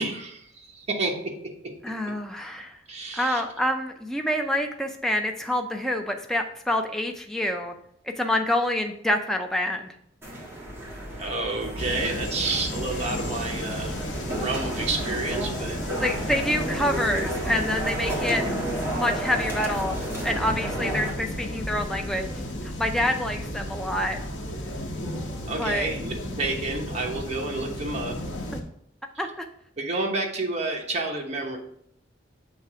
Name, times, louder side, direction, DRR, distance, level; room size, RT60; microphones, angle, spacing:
voice 1, 0.0-1.3 2.9-3.4 11.2-14.0 14.4-15.8 25.5-28.2 29.8-31.6, right 3 dB, 35° right, 0 dB, 1.1 m, -29 dB
voice 2, 1.8-2.8 3.1-7.7 8.2-9.9 16.0-18.4 18.9-20.0 20.2-22.3 22.6-24.2 25.6-25.9 29.2-29.5, left 1 dB, ahead, 3 dB, 0.4 m, -27 dB
sound 1, 10.2-21.1, right 1 dB, 15° right, 1.5 m, -33 dB
sound 2, 10.7-22.5, equal, 35° left, 1.0 m, -41 dB
sound 3, 11.8-28.6, left 1 dB, 70° left, 1.0 m, -34 dB
6.9 x 3.2 x 4.8 m, 0.70 s
head